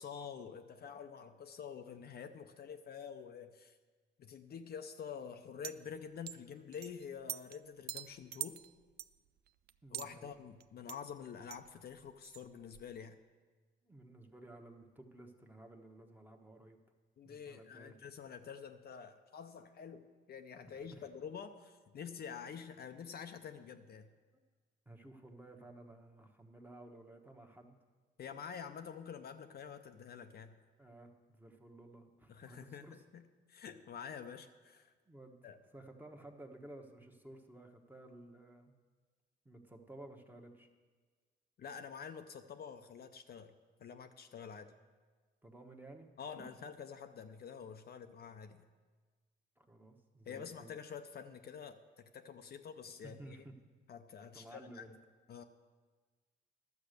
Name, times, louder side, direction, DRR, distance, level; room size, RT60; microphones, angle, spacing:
voice 1, 0.0-3.8 4.2-8.6 9.9-13.2 17.2-24.1 28.2-30.6 32.3-34.9 35.4-35.6 41.6-43.5 43.8-44.7 46.2-48.6 50.3-53.4 53.9-54.9 55.3-55.4, left 7 dB, 55° left, 7 dB, 0.6 m, -48 dB
sound 1, 5.6-5.7 6.3-6.4 6.7-7.6 7.9-10.1 10.6-10.7 10.9-11.0 11.5-11.7 11.9-12.9, right 11 dB, 55° right, 0.4 m, -44 dB
voice 2, 9.8-10.3 13.8-16.8 17.2-18.1 20.7-21.1 24.8-27.8 30.8-33.0 35.1-35.5 35.7-38.7 39.4-40.7 45.4-46.1 49.6-50.7 53.0-53.6 54.3-54.9, right 1 dB, 10° right, 3 dB, 1.2 m, -54 dB
12.0 x 7.1 x 6.6 m, 1.4 s
cardioid pair, 90°, 20 cm